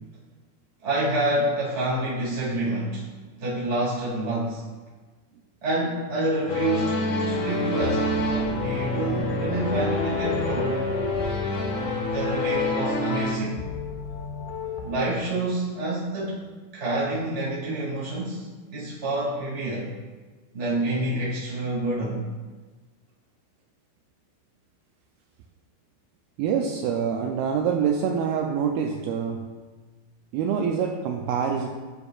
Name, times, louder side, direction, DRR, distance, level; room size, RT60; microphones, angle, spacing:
voice 1, 0.8-3.1 3.4-4.7 5.6-10.8 12.1-13.6 14.8-16.5 16.7-19.9 20.5-22.2, right 2 dB, 25° right, -7 dB, 1.5 m, -28 dB
sound 1, 6.5-13.3, left 2 dB, 60° left, 2.3 m, -27 dB
sound 2, 7.8-14.9, left 5 dB, 80° left, 2.4 m, -34 dB
voice 2, 26.4-29.5 30.3-31.7, right 7 dB, 90° right, 2 dB, 2.1 m, -25 dB
12.0 x 6.6 x 2.4 m, 1.4 s
omnidirectional pair, 4.9 m